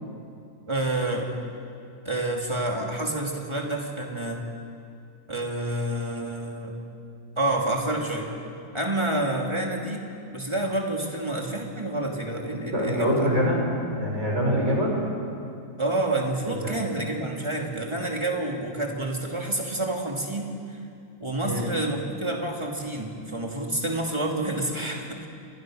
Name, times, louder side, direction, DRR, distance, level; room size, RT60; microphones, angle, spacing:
voice 1, 0.7-1.3 2.0-4.5 5.3-6.8 7.4-8.3 8.7-13.3 15.8-20.8 21.2-25.3, right 2 dB, 20° right, 0 dB, 2.8 m, -28 dB
voice 2, 12.7-13.6 13.9-14.9 16.4-16.8 21.4-21.6, equal, 55° right, -2 dB, 6.1 m, -24 dB
28.5 x 22.5 x 6.4 m, 2.5 s
omnidirectional pair, 1.4 m